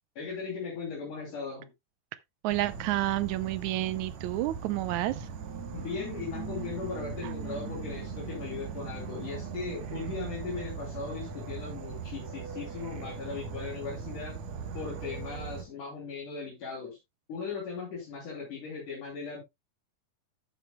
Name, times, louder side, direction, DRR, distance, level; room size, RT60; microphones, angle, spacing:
voice 1, 0.2-1.7 5.7-14.4 14.7-17.0 17.3-19.4, left 5 dB, 65° left, 4.3 m, -38 dB
voice 2, 2.4-5.3 7.2-7.3, right 16 dB, 80° right, 1.8 m, -30 dB
Insect / Frog, 2.5-15.6, right 6 dB, 60° right, 2.3 m, -39 dB
12.0 x 8.4 x 2.2 m
omnidirectional pair, 3.9 m